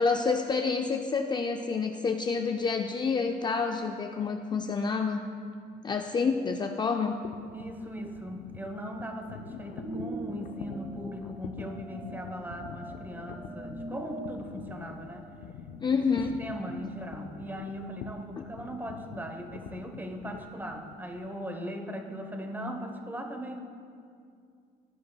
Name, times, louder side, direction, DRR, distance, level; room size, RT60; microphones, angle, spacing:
voice 1, 0.0-5.2 5.8-7.2 15.8-16.3 18.4-18.5, left 5 dB, 25° left, 4 dB, 0.4 m, -28 dB
sound 1, 7.2-21.3, left 7 dB, 90° left, 0.5 m, -45 dB
voice 2, 7.5-15.3 15.9-23.6, equal, 10° right, 4 dB, 1.0 m, -39 dB
sound 2, 9.5-15.7, right 2 dB, 35° right, 1.2 m, -42 dB
14.5 x 9.3 x 2.3 m, 2.3 s
cardioid pair, 110°, 17 cm